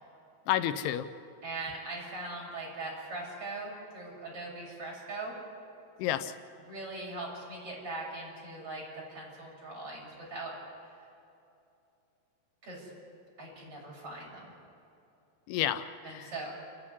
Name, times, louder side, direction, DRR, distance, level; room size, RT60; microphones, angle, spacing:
voice 1, 0.5-1.1 6.0-6.4 15.5-16.5, left 12 dB, 85° left, 11 dB, 2.7 m, -31 dB
voice 2, 1.4-5.3 6.7-10.5 12.6-12.9 13.4-14.5 16.0-16.5, right 2 dB, 35° right, -4 dB, 8.1 m, -40 dB
29.0 x 11.0 x 9.9 m, 2.7 s
omnidirectional pair, 4.7 m